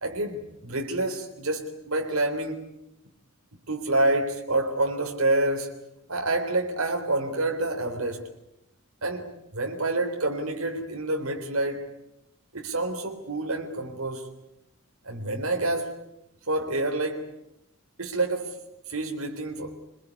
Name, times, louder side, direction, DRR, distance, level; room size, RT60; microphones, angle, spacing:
voice 1, 0.0-2.7 3.7-5.7 6.1-8.3 9.0-9.3 9.5-11.9 12.5-14.3 15.0-15.9 16.5-17.3 18.0-18.6 18.9-19.7, right 2 dB, 85° right, 3.7 m, -28 dB
24.5 x 22.0 x 9.7 m
head